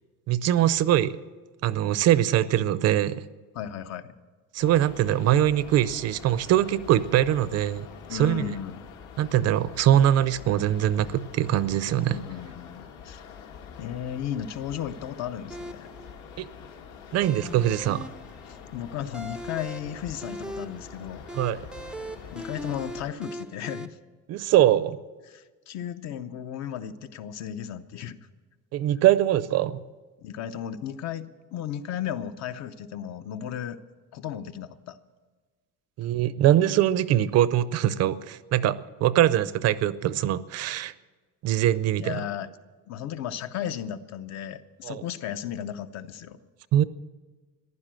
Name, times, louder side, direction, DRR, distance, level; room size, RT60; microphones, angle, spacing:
voice 1, 0.3-1.2 1.6-3.3 4.5-8.5 9.2-12.2 16.4-16.5 17.1-18.0 21.3-21.6 24.3-25.0 28.7-29.8 36.0-40.9 41.4-42.2 44.8-45.0 46.7-46.8, right 12 dB, 50° right, 16 dB, 0.5 m, -22 dB
voice 2, 3.5-4.1 8.0-8.8 12.0-13.2 13.8-15.9 18.5-21.2 22.3-24.0 25.3-28.2 30.2-33.8 34.1-35.0 42.0-42.5 42.9-46.4, left 10 dB, 55° left, 11 dB, 0.8 m, -35 dB
sound 1, 4.6-23.1, left 6 dB, 70° left, 1.9 m, -45 dB
sound 2, 15.5-23.9, right 1 dB, 5° right, 0.4 m, -40 dB
15.0 x 11.0 x 7.5 m, 1.3 s
cardioid pair, 180°, 32 cm